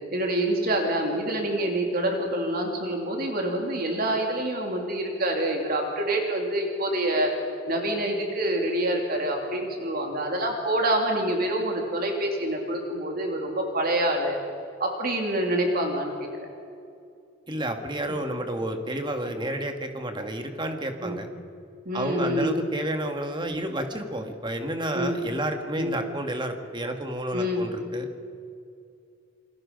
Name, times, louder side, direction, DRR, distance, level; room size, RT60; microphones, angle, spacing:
voice 1, 0.1-7.3 7.7-14.4 14.8-16.1 21.0-21.2 21.8-22.6 24.9-25.2 25.8-26.0 27.3-27.6, right 1 dB, 50° right, 2 dB, 2.9 m, -26 dB
voice 2, 17.5-21.3 21.9-28.1, right 1 dB, 25° right, 5 dB, 1.8 m, -30 dB
28.5 x 21.0 x 5.3 m, 2.5 s
head